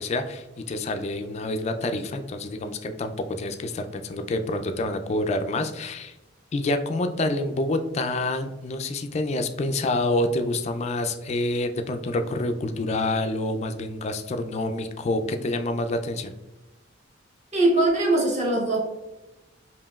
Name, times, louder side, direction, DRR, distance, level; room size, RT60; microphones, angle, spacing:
voice 1, 0.0-6.1 6.5-16.3, left 2 dB, 35° left, 7 dB, 0.3 m, -27 dB
voice 2, 17.5-18.8, right 2 dB, 35° right, -2 dB, 0.9 m, -21 dB
4.9 x 2.8 x 2.3 m, 1.0 s
head